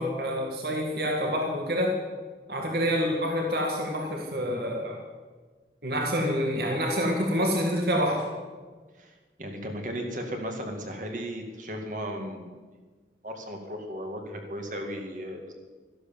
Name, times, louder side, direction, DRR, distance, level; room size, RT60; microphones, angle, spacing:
voice 1, 0.0-2.0 2.5-5.0 5.8-8.3, equal, 60° right, 0 dB, 2.1 m, -27 dB
voice 2, 9.4-12.6 13.2-15.5, equal, 45° right, 3 dB, 2.2 m, -35 dB
13.5 x 11.5 x 7.2 m, 1.4 s
head